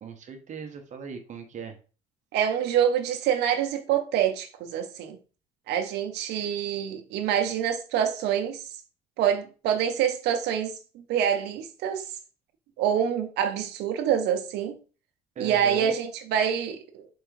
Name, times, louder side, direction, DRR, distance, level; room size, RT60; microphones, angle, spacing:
voice 1, 0.0-1.8 15.3-15.9, right 6 dB, 45° right, 0.9 m, -38 dB
voice 2, 2.3-5.2 5.7-8.6 9.2-10.7 11.1-12.1 12.8-14.8 15.4-17.1, right 9 dB, 80° right, 0.7 m, -26 dB
4.6 x 3.3 x 3.1 m
cardioid pair, 110°, 17 cm